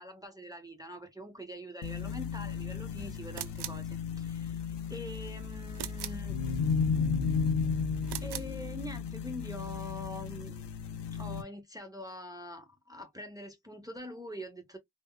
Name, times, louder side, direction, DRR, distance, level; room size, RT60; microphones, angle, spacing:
voice 1, 0.0-6.4 8.2-10.7 11.1-14.8, equal, 10° right, 0.8 m, -44 dB
sound 1, 1.8-11.4, left 5 dB, 70° left, 0.7 m, -34 dB
sound 2, 3.3-3.9 5.8-6.3 8.0-8.6, right 12 dB, 65° right, 0.5 m, -40 dB
3.5 x 2.0 x 2.2 m
cardioid pair, 45°, 42 cm